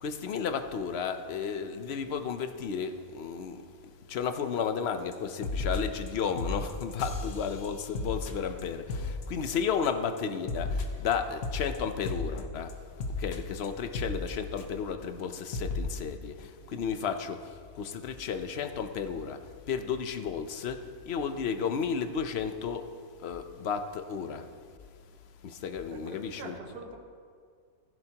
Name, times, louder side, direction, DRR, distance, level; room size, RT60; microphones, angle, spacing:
voice 1, 0.0-3.6 4.1-12.7 13.2-19.4 19.7-22.9 23.2-24.5 25.4-26.5, left 6 dB, 55° left, 8 dB, 0.9 m, -33 dB
sound 1, 5.1-5.2 5.4-6.1 6.4-9.9 10.2-14.9 15.2-15.3 15.5-15.8, left 3 dB, 75° left, 1.5 m, -35 dB
voice 2, 16.3-16.8 25.9-27.0, right 3 dB, 80° right, 1 dB, 1.9 m, -46 dB
15.5 x 15.5 x 2.9 m, 2.1 s
omnidirectional pair, 1.6 m